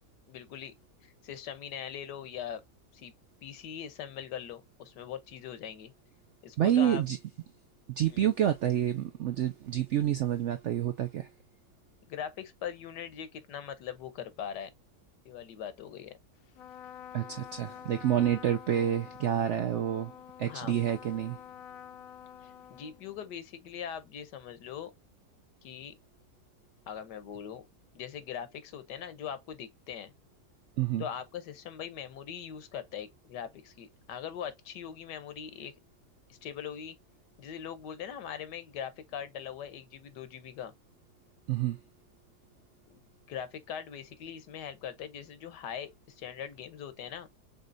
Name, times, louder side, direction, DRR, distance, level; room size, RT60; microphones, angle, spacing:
voice 1, 0.3-0.7 1.0-2.6 2.9-3.1 3.4-5.9 6.4-7.0 8.1-8.2 12.1-14.7 15.2-16.2 20.4-20.7 22.4-24.9 25.6-25.9 26.9-27.7 27.9-30.1 31.0-35.7 36.3-37.0 37.4-40.7 42.9-43.0 43.3-47.3, left 8 dB, 85° left, 1.5 m, -41 dB
voice 2, 6.6-7.2 8.0-11.3 17.1-20.1 20.4-21.4 30.8-31.0 41.5-41.8, right 10 dB, 80° right, 0.6 m, -28 dB
Trumpet, 16.5-23.4, left 10 dB, 70° left, 0.8 m, -48 dB
6.6 x 3.2 x 2.6 m
omnidirectional pair, 1.8 m